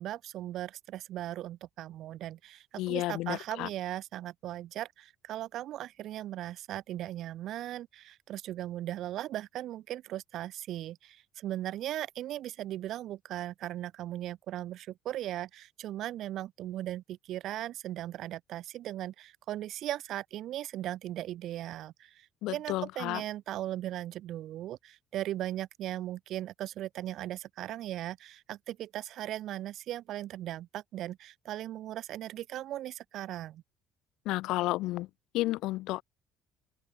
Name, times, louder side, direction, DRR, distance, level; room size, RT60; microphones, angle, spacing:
voice 1, 0.0-33.6, right 13 dB, 65° right, 0.7 m, -38 dB
voice 2, 2.8-3.7 22.4-23.2 34.3-35.1 35.3-36.0, left 18 dB, 75° left, 0.6 m, -31 dB
open air
supercardioid pair, 80°, 0 cm